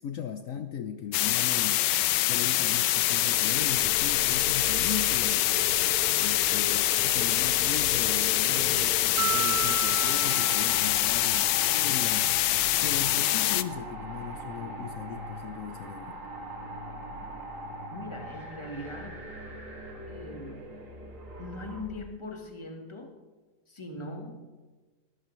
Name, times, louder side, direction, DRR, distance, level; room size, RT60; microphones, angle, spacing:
voice 1, 0.0-5.8 6.2-12.3 12.8-16.2, left 8 dB, 65° left, 8 dB, 0.9 m, -38 dB
sound 1, 1.1-13.6, left 14 dB, 85° left, 1.2 m, -25 dB
sound 2, 2.9-21.8, right 1 dB, 50° right, 2.5 m, -41 dB
Mallet percussion, 9.2-11.6, right 12 dB, 85° right, 1.2 m, -34 dB
voice 2, 17.9-19.2 20.1-20.7 21.4-23.2 23.7-24.5, left 1 dB, 20° left, 3 dB, 1.2 m, -41 dB
20.0 x 13.0 x 3.2 m, 1.3 s
omnidirectional pair, 1.8 m